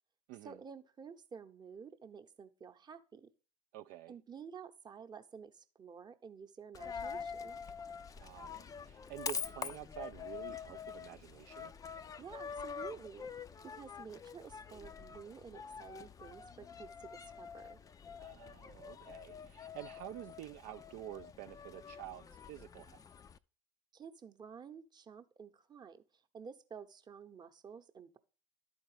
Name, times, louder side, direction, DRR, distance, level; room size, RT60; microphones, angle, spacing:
voice 1, 0.4-3.3 4.1-7.6 12.2-13.3 13.6-17.8 23.9-26.0 26.3-28.2, right 6 dB, 25° right, 0.9 m, -51 dB
voice 2, 3.7-4.2 8.2-11.7 18.2-23.0, right 13 dB, 50° right, 0.4 m, -49 dB
Coin (dropping), 6.7-23.4, left 6 dB, 20° left, 0.4 m, -46 dB
11.5 x 4.4 x 4.9 m
hypercardioid pair, 85°, 18 cm